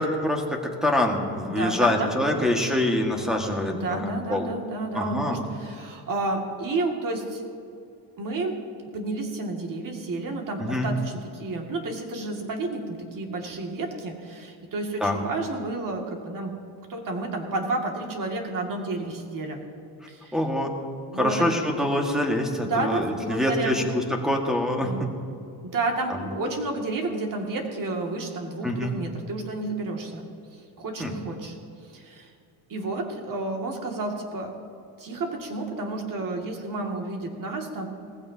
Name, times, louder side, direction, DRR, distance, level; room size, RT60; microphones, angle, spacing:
voice 1, 0.0-4.5 4.9-5.4 10.6-10.9 15.0-15.2 20.3-20.7 21.2-25.1 26.1-26.3 28.6-28.9 31.0-31.1, left 1 dB, ahead, 1 dB, 1.7 m, -25 dB
voice 2, 1.5-2.4 3.7-7.4 8.2-8.5 8.9-16.5 16.9-19.6 20.1-20.4 21.1-21.5 22.6-23.8 24.8-25.0 25.6-30.3 30.8-31.5 31.9-32.3 32.7-34.6 35.0-37.9, right 2 dB, 45° right, 1 dB, 2.3 m, -31 dB
19.5 x 15.5 x 2.8 m, 2.4 s
cardioid pair, 135°, 47 cm